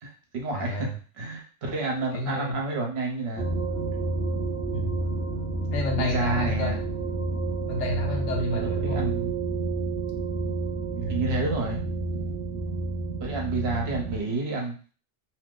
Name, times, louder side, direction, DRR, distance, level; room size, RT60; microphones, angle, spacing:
voice 1, 0.0-0.9 1.2-3.4 5.9-6.8 8.4-9.3 10.9-11.8 12.1-12.3 13.2-14.7, right 3 dB, 60° right, 0 dB, 1.0 m, -30 dB
voice 2, 0.5-1.0 2.1-2.6 4.7-5.0 5.7-6.7 7.7-9.1 11.0-11.3, left 1 dB, 80° left, 0 dB, 1.0 m, -31 dB
sound 1, 3.4-14.2, right 3 dB, 10° left, 0.6 m, -30 dB
2.8 x 2.0 x 3.6 m, 0.40 s
omnidirectional pair, 1.3 m